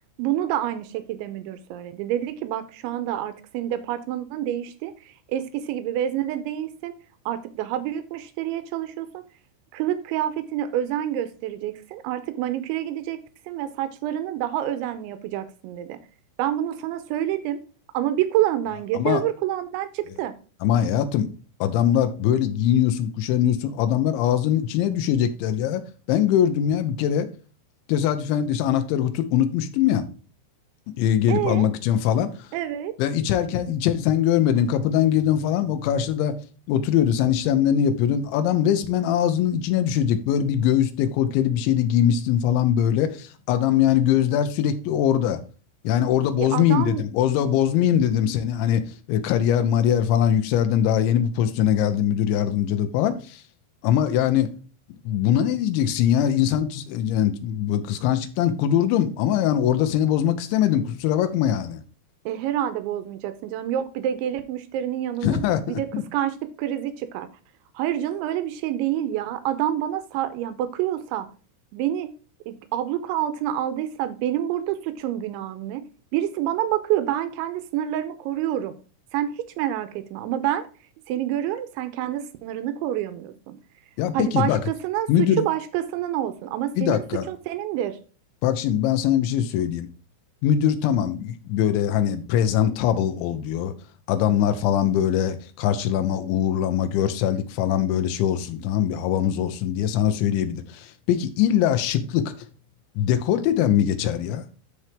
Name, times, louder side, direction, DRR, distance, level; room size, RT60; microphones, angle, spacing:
voice 1, 0.2-6.9 7.3-9.2 9.7-16.0 16.4-17.6 17.9-20.3 31.3-31.7 32.5-32.9 46.4-47.0 62.3-67.3 67.7-71.3 71.7-72.1 72.5-75.8 76.1-78.8 79.1-80.7 81.1-83.6 84.1-88.0, right 12 dB, 85° right, 10 dB, 2.8 m, -27 dB
voice 2, 20.6-21.3 21.6-25.8 26.1-27.3 27.9-30.0 31.0-32.5 33.0-36.3 36.7-45.4 45.8-48.8 49.1-53.4 53.8-54.5 55.1-61.8 65.2-66.0 84.0-84.6 85.1-85.4 86.8-87.3 88.4-89.9 90.4-93.7 94.1-102.3 103.0-104.4, left 10 dB, 75° left, 9 dB, 3.1 m, -22 dB
13.0 x 4.5 x 3.5 m, 0.36 s
omnidirectional pair, 5.9 m